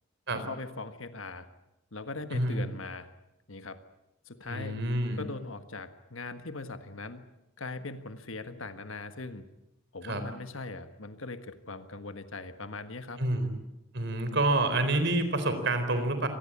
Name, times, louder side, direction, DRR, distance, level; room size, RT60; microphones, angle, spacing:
voice 1, 0.3-1.5 1.9-3.1 3.5-3.8 4.2-4.8 5.2-7.2 7.6-9.4 9.9-13.2, left 3 dB, 70° left, 10 dB, 1.6 m, -40 dB
voice 2, 2.3-2.6 4.5-5.2 10.0-10.2 13.2-13.5 13.9-16.3, right 2 dB, 55° right, 9 dB, 4.0 m, -28 dB
25.5 x 19.5 x 8.7 m, 0.91 s
head